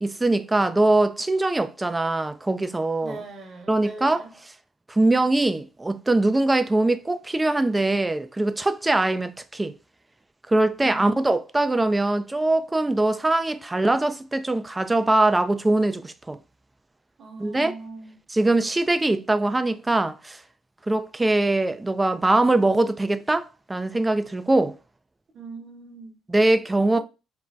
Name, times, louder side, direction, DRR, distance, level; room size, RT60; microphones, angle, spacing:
voice 1, 0.0-3.2 3.7-4.3 4.9-9.7 10.5-16.4 17.4-17.7 18.3-20.4 20.9-24.8 26.3-27.0, right 2 dB, 15° right, 0.3 m, -22 dB
voice 2, 3.0-4.3 10.8-11.1 17.2-18.2 25.3-26.1, right 3 dB, 45° right, 0.9 m, -40 dB
2.5 x 2.1 x 3.3 m
hypercardioid pair, 60°, 0 cm